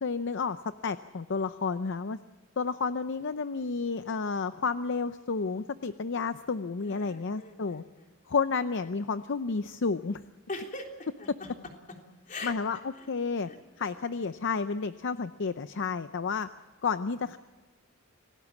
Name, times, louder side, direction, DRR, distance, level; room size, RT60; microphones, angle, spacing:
voice 1, 0.0-2.2 2.6-7.8 8.3-10.2 12.4-12.8 13.1-13.5 13.8-16.5 16.8-17.4, left 4 dB, 60° left, 12 dB, 0.6 m, -31 dB
voice 2, 6.8-8.1 10.5-11.5 12.3-12.5 13.0-13.1 13.5-13.6, left 2 dB, 40° left, 2 dB, 3.6 m, -41 dB
27.0 x 18.0 x 7.3 m, 1.3 s
head